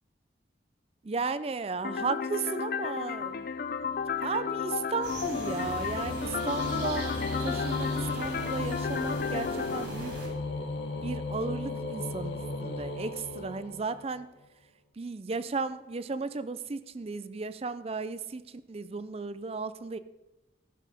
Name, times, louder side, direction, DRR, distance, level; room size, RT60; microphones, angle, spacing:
voice 1, 1.0-3.5 4.2-7.2 7.4-10.3 11.0-14.3 15.0-20.0, right 4 dB, 30° right, 0.4 m, -35 dB
sound 1, 1.8-9.8, left 6 dB, 50° left, 0.5 m, -33 dB
sound 2, 3.3-14.2, left 3 dB, 65° left, 1.0 m, -37 dB
sound 3, 5.0-10.3, right 2 dB, 65° right, 3.5 m, -41 dB
14.5 x 6.3 x 5.4 m
head